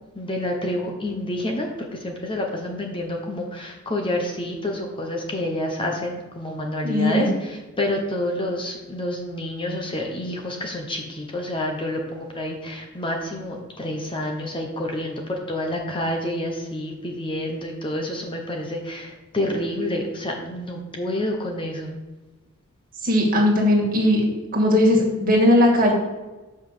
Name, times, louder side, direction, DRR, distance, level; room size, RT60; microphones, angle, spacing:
voice 1, 0.1-21.9, left 1 dB, 25° left, 1 dB, 1.0 m, -28 dB
voice 2, 6.8-7.3 23.0-24.2 24.5-25.9, left 1 dB, 40° right, -1 dB, 2.1 m, -18 dB
6.1 x 5.5 x 6.7 m, 1.2 s
head